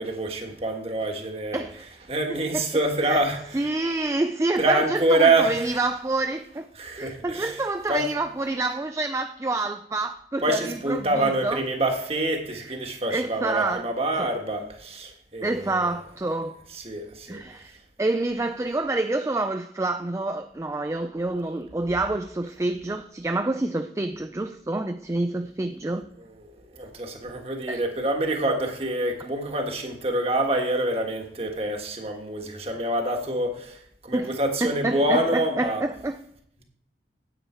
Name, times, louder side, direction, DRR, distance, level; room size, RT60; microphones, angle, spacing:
voice 1, 0.0-1.6 2.1-3.6 4.6-5.8 6.8-7.6 7.9-8.1 10.4-15.9 16.7-17.4 26.2-35.8, right 1 dB, 35° right, 1.5 m, -26 dB
voice 2, 1.5-1.8 2.5-2.7 3.0-3.2 3.5-6.7 7.0-11.6 12.5-12.8 13.1-13.8 14.2-14.3 15.4-16.6 17.3-26.0 27.7-27.8 34.1-36.2, right 2 dB, 15° right, 0.3 m, -28 dB
9.7 x 8.7 x 4.4 m
head